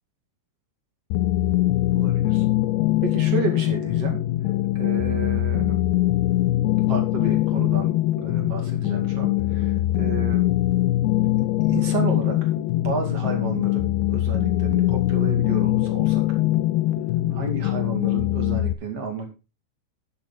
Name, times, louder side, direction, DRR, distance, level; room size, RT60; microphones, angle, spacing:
sound 1, 1.1-18.7, left 15 dB, 80° left, 2.7 m, -22 dB
voice 1, 1.9-2.5 3.0-4.2 4.7-5.8 6.9-7.9 8.2-10.5 11.7-12.5 12.8-16.4 17.3-19.3, right 5 dB, 45° right, 3 dB, 2.5 m, -31 dB
10.5 x 8.9 x 4.1 m, 0.29 s
omnidirectional pair, 5.2 m